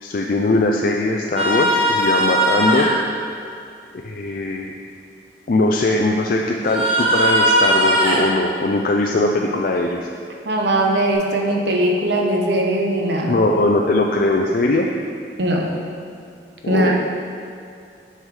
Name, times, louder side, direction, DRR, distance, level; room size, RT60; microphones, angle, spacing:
voice 1, 0.0-2.9 4.0-4.7 5.5-10.0 13.2-14.9 16.6-17.1, left 2 dB, 50° left, 1 dB, 0.4 m, -20 dB
sound 1, 1.4-2.9 6.6-8.2 11.1-11.2, right 1 dB, 35° right, 1.5 m, -18 dB
voice 2, 10.4-13.4 15.4-15.7 16.7-17.0, right 1 dB, 80° right, 0 dB, 1.0 m, -20 dB
8.0 x 5.8 x 4.8 m, 2.4 s
head